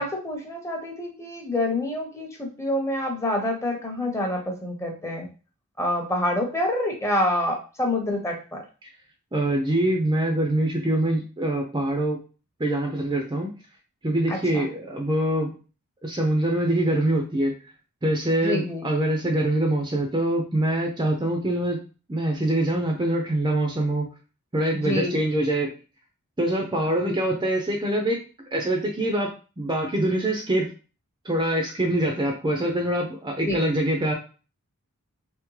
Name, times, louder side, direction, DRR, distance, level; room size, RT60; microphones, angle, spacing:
voice 1, 0.0-5.3 5.8-8.6 14.3-14.6 18.4-18.9 24.7-25.2 27.0-27.1 33.4-33.6, left 1 dB, 15° left, 1 dB, 0.8 m, -27 dB
voice 2, 9.3-12.2 12.6-13.5 14.0-15.6 16.0-17.6 18.0-21.8 22.1-24.1 24.5-25.7 26.4-28.2 28.5-30.7 31.2-34.1, right 1 dB, 20° right, 2 dB, 0.5 m, -24 dB
3.5 x 3.2 x 3.1 m, 0.35 s
head